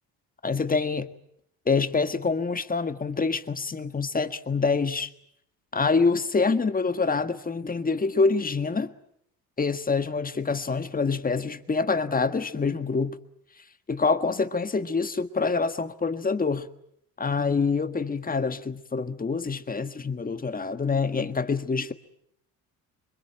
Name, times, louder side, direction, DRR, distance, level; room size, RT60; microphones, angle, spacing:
voice 1, 0.4-1.1 1.6-5.1 5.7-8.9 9.6-13.2 13.9-16.7 17.2-21.9, left 4 dB, 25° left, 1.6 m, -26 dB
25.0 x 23.0 x 8.9 m
cardioid pair, 95°, 37 cm